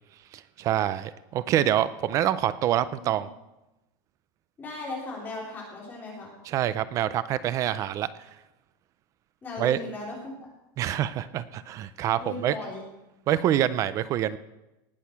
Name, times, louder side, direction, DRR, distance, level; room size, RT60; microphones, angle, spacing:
voice 1, 0.3-3.3 6.4-8.1 9.6-9.8 10.8-12.6 13.3-14.4, right 11 dB, 25° right, 16 dB, 0.4 m, -26 dB
voice 2, 3.0-3.3 4.6-6.3 9.4-10.4 12.2-12.9, left 2 dB, 15° left, -4 dB, 3.4 m, -37 dB
18.5 x 6.5 x 5.8 m, 0.94 s
supercardioid pair, 170°, 12 cm